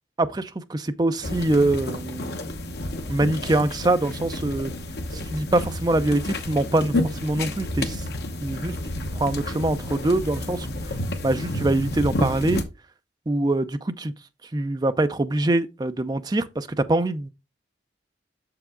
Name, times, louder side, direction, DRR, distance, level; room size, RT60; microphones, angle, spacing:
voice 1, 0.2-2.4 3.1-4.7 5.3-8.0 8.4-8.7 9.1-10.7 11.2-12.6 13.3-14.1 14.5-17.3, right 2 dB, 20° right, 0.4 m, -24 dB
sound 1, 1.2-12.6, left 1 dB, 60° left, 1.0 m, -30 dB
6.8 x 4.8 x 3.7 m
head